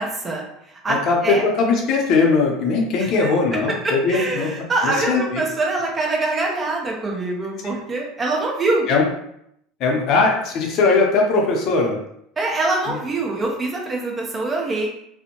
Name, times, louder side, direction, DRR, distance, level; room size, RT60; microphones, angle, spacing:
voice 1, 0.0-1.5 3.0-3.3 3.8-8.9 12.4-14.9, right 2 dB, 25° right, -1 dB, 0.7 m, -24 dB
voice 2, 0.9-5.4 8.9-9.0 9.8-12.0, left 4 dB, 55° left, 1 dB, 0.6 m, -20 dB
2.6 x 2.1 x 2.9 m, 0.75 s
supercardioid pair, 105°, 0 cm